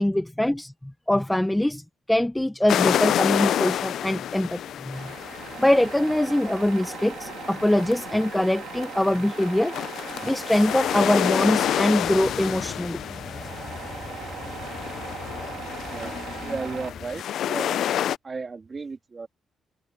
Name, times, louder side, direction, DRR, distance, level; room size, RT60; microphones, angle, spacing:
voice 1, 0.0-1.8 2.1-5.1 5.6-9.7 10.2-13.0, left 1 dB, 5° left, 0.7 m, -23 dB
sound 1, 2.7-18.2, left 10 dB, 65° left, 0.4 m, -29 dB
Tools, 4.9-16.9, right 10 dB, 75° right, 3.2 m, -40 dB
sound 2, 12.0-17.2, left 6 dB, 35° left, 4.0 m, -40 dB
voice 2, 15.9-17.9 18.2-19.3, right 4 dB, 25° right, 2.6 m, -35 dB
cardioid pair, 170°, 0 cm